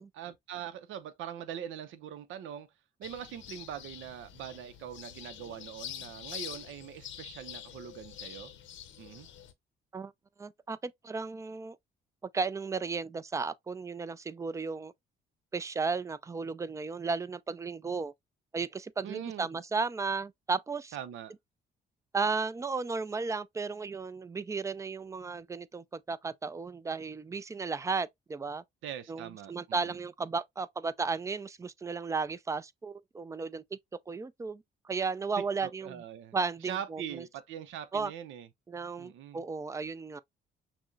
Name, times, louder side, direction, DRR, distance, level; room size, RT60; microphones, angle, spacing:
voice 1, 0.0-2.7 3.0-8.5 9.0-9.3 19.0-19.5 20.9-21.3 28.8-29.9 35.4-36.4 36.6-38.5 39.0-39.4, right 9 dB, 80° right, 0.6 m, -42 dB
sound 1, 3.0-9.5, left 10 dB, 75° left, 0.7 m, -46 dB
voice 2, 10.4-11.8 12.3-14.9 15.5-18.1 18.5-21.0 22.1-28.6 29.1-33.8 34.1-36.0 36.3-37.2 37.9-38.1 38.7-40.2, right 4 dB, 15° right, 0.3 m, -34 dB
6.0 x 2.1 x 2.6 m
cardioid pair, 90°, 20 cm